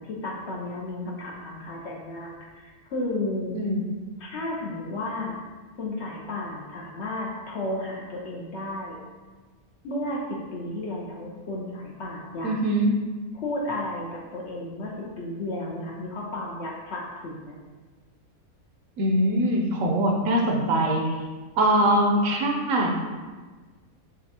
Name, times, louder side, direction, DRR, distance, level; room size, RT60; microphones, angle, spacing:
voice 1, 0.0-3.5 4.2-5.4 5.8-9.0 9.8-12.5 13.3-17.6, left 1 dB, 60° left, -3 dB, 0.8 m, -33 dB
voice 2, 12.4-12.9 19.0-21.1 21.6-22.9, right 1 dB, 70° right, 1 dB, 0.9 m, -22 dB
6.4 x 2.3 x 2.7 m, 1.4 s
omnidirectional pair, 1.5 m